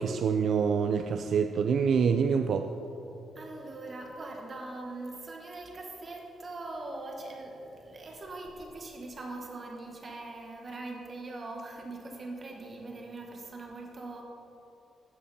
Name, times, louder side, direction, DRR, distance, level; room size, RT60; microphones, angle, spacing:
voice 1, 0.0-2.7, right 6 dB, 50° right, 7 dB, 0.4 m, -26 dB
voice 2, 3.3-14.2, right 2 dB, 30° right, 0 dB, 1.4 m, -41 dB
13.5 x 9.4 x 4.2 m, 3.0 s
cardioid pair, 165°, 0 cm